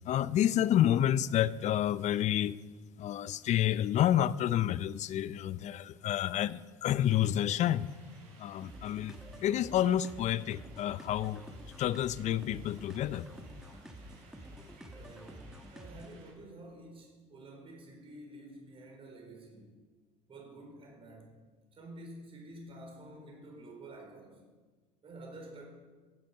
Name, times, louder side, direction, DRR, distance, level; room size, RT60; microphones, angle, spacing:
voice 1, 0.1-2.5 3.0-7.9 8.4-11.4 11.8-13.3, left 11 dB, 50° left, 17 dB, 0.6 m, -29 dB
sound 1, 7.0-16.3, right 3 dB, 70° right, 5.2 m, -60 dB
sound 2, 8.6-16.2, equal, 5° right, 1.6 m, -49 dB
voice 2, 14.9-19.8 20.3-21.4 21.7-24.4 25.0-25.7, right 1 dB, 35° right, 0 dB, 4.5 m, -50 dB
16.5 x 8.2 x 5.7 m, 1.3 s
supercardioid pair, 90°, 15 cm